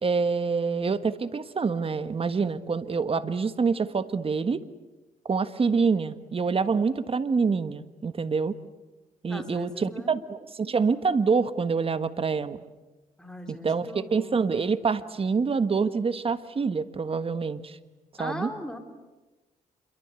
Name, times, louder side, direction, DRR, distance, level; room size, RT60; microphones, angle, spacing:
voice 1, 0.0-4.6 5.2-8.6 9.2-12.6 13.5-17.8 18.2-18.5, right 5 dB, 40° right, 12 dB, 1.5 m, -26 dB
voice 2, 9.3-10.2 13.2-14.7 18.2-18.8, left 1 dB, 5° left, 4 dB, 4.4 m, -39 dB
27.0 x 23.0 x 8.3 m, 1.1 s
cardioid pair, 90°, 15 cm